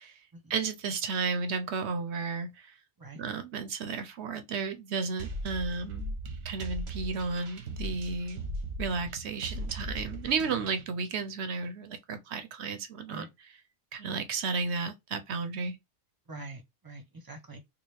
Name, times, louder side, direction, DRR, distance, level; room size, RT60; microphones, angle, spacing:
voice 1, 0.5-2.7 3.1-6.2 6.4-8.4 8.8-13.2 13.9-15.8, right 4 dB, 65° right, 0.8 m, -33 dB
sound 1, 5.2-10.8, right 1 dB, 85° right, 1.3 m, -38 dB
voice 2, 16.3-17.6, right 2 dB, 20° right, 0.6 m, -45 dB
4.7 x 2.1 x 3.3 m
omnidirectional pair, 1.4 m